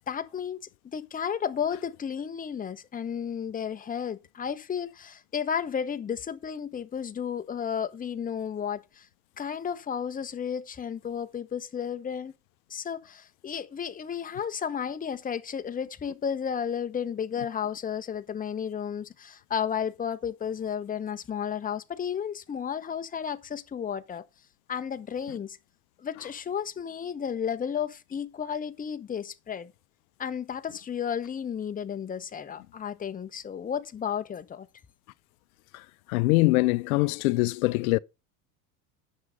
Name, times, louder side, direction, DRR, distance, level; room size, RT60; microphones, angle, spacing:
voice 1, 0.1-9.1 9.4-12.3 12.7-24.3 24.7-25.6 26.0-29.7 30.2-34.7, left 8 dB, 20° left, 1.0 m, -33 dB
voice 2, 36.1-38.0, left 22 dB, 80° left, 0.6 m, -23 dB
9.7 x 6.3 x 5.2 m
supercardioid pair, 115°, 43 cm